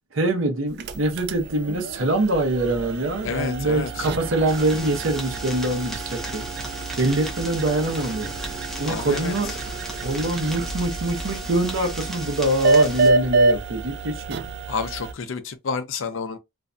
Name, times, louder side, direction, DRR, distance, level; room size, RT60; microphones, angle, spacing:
voice 1, 0.1-6.4 7.0-8.3 8.8-9.5 10.0-14.4, right 1 dB, 70° right, 0.7 m, -24 dB
sound 1, 0.7-15.1, right 3 dB, 50° right, 0.3 m, -27 dB
voice 2, 3.2-4.1 8.9-9.3 14.7-16.4, left 5 dB, 65° left, 0.4 m, -29 dB
Wind instrument woodwind instrument, 3.6-9.7, right 1 dB, 35° right, 0.7 m, -45 dB
sound 2, 4.5-13.1, equal, ahead, 0.6 m, -37 dB
2.5 x 2.2 x 2.5 m
head